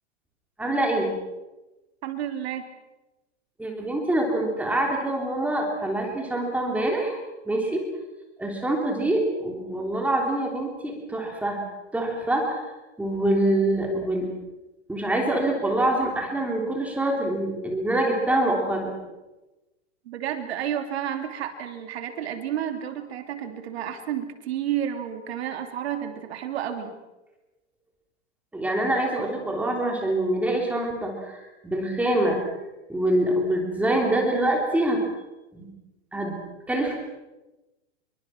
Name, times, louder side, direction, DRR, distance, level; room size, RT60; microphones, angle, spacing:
voice 1, 0.6-1.1 3.6-7.2 7.4-7.8 8.4-11.6 11.9-12.6 13.0-14.3 14.9-18.9 28.5-32.4 32.9-35.0 35.5-35.7 36.1-36.4 36.7-37.0, right 1 dB, 5° right, 0 dB, 3.4 m, -25 dB
voice 2, 2.0-2.7 20.0-26.9, right 10 dB, 60° right, 6 dB, 3.0 m, -31 dB
26.5 x 23.5 x 5.9 m, 1.1 s
supercardioid pair, 160°, 36 cm